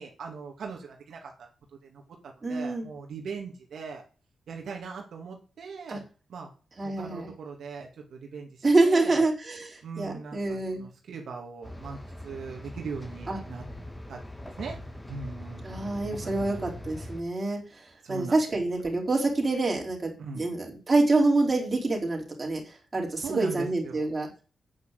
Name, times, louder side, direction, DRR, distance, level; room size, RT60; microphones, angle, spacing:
voice 1, 0.0-4.0 4.5-6.0 6.3-6.5 6.8-9.3 9.8-13.6 14.1-14.2 14.6-14.8 15.1-15.9 16.1-16.6 18.0-18.6 20.2-20.5 23.2-24.1, right 5 dB, 80° right, 2 dB, 2.3 m, -40 dB
voice 2, 2.4-2.9 5.9-6.0 6.8-7.3 8.6-10.9 13.3-13.4 15.6-24.3, right 2 dB, 25° right, -1 dB, 4.3 m, -26 dB
sound 1, 11.6-17.2, left 1 dB, 10° left, 1.7 m, -41 dB
9.1 x 6.2 x 8.2 m, 0.37 s
wide cardioid pair, 155°, 0 cm